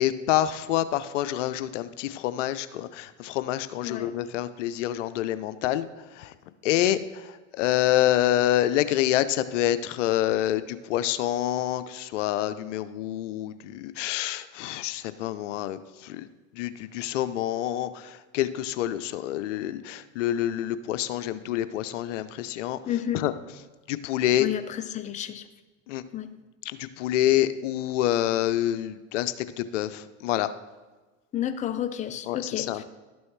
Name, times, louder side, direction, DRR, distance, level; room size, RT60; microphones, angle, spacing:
voice 1, 0.0-6.3 6.6-16.3 16.5-22.8 23.1-23.3 23.9-24.5 25.9-26.0 26.6-30.5 32.3-32.8, left 12 dB, 80° left, 13 dB, 0.6 m, -27 dB
voice 2, 22.9-23.2 24.4-25.4 26.1-26.3 31.3-32.7, left 10 dB, 20° left, 10 dB, 0.5 m, -31 dB
12.0 x 6.2 x 3.1 m, 1.2 s
hypercardioid pair, 95°, 36 cm